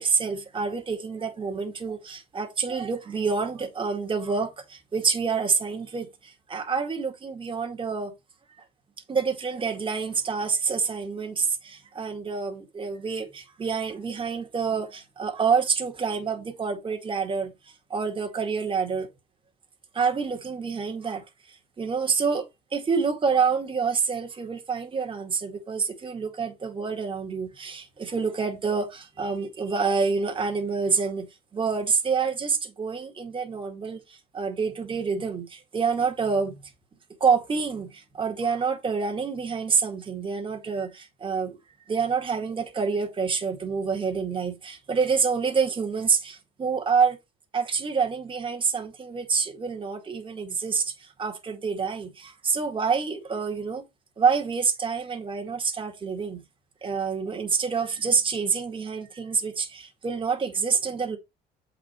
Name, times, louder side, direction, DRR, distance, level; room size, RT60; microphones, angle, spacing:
voice 1, 0.0-8.1 8.6-8.7 9.1-19.1 19.9-22.5 22.7-31.3 31.5-36.6 37.2-41.6 41.9-47.2 47.5-53.8 54.2-56.4 56.8-61.2, right 5 dB, 30° right, 2.2 m, -27 dB
8.0 x 5.1 x 4.6 m
cardioid pair, 110°, 17 cm